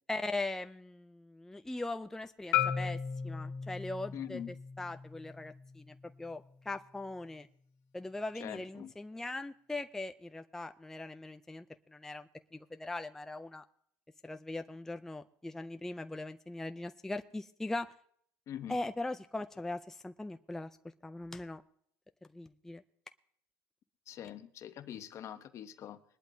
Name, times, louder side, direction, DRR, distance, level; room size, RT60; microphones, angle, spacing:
voice 1, 0.1-7.5 7.9-13.6 14.2-17.9 18.7-20.7 21.0-21.6 22.3-22.8, left 2 dB, 5° left, 8 dB, 0.4 m, -40 dB
Marimba xylophone, 2.5-6.7, left 9 dB, 75° left, 1.7 m, -37 dB
voice 2, 4.1-4.5 8.4-8.9 18.5-18.8 24.1-26.2, left 10 dB, 50° left, 10 dB, 1.0 m, -44 dB
21.5 x 11.5 x 2.8 m, 0.66 s
cardioid pair, 110°, 6 cm